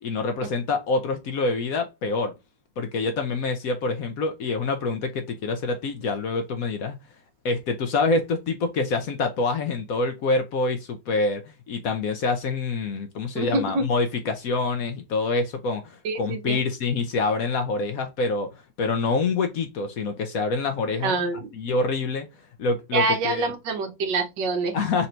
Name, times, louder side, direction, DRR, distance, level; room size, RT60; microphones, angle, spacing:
voice 1, 0.0-2.3 2.8-7.0 7.4-11.4 11.7-21.2 21.5-22.3 22.6-23.5 24.7-25.1, left 3 dB, 65° left, 0.9 m, -26 dB
voice 2, 13.3-13.8 16.0-16.6 21.0-21.4 22.9-24.8, right 3 dB, 70° right, 1.6 m, -26 dB
4.2 x 2.6 x 4.3 m
omnidirectional pair, 2.0 m